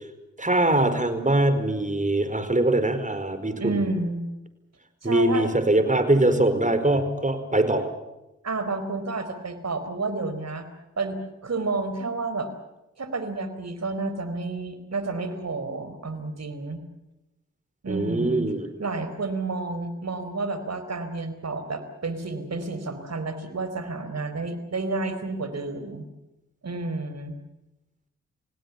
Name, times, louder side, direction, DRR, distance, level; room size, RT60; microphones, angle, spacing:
voice 1, 0.4-3.9 5.0-7.9 17.9-18.7, right 1 dB, 25° right, 10 dB, 4.8 m, -22 dB
voice 2, 3.6-4.2 5.0-5.5 8.4-10.7 11.0-12.5 13.0-16.8 17.8-18.5 18.8-26.0 26.6-27.4, right 3 dB, 60° right, 10 dB, 4.4 m, -30 dB
28.5 x 18.0 x 7.3 m, 0.95 s
cardioid pair, 45°, 30 cm